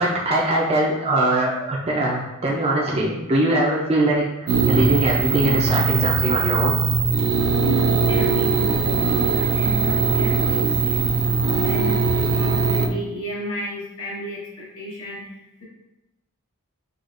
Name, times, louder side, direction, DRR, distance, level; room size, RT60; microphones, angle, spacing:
voice 1, 0.0-6.8, right 1 dB, 30° right, -4 dB, 0.4 m, -21 dB
sound 1, 4.5-12.9, right 4 dB, 80° right, 0.5 m, -20 dB
voice 2, 7.6-15.6, right 1 dB, 80° left, -7 dB, 1.2 m, -32 dB
4.8 x 2.4 x 2.5 m, 0.96 s
head